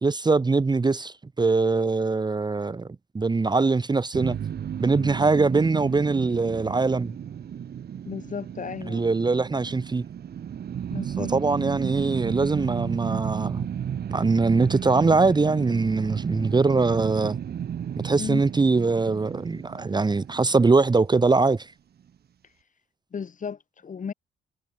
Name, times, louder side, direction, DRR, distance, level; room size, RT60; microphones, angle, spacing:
voice 1, 0.0-2.9 3.1-4.4 4.8-7.2 8.9-10.0 11.2-13.7 14.1-17.4 18.0-21.7, right 3 dB, 20° right, 1.0 m, -22 dB
sound 1, 4.1-21.3, right 9 dB, 55° right, 1.4 m, -33 dB
voice 2, 8.1-9.1 10.9-11.3 18.2-18.4 23.1-24.1, left 6 dB, 40° left, 2.0 m, -34 dB
cardioid pair, 90°, 20 cm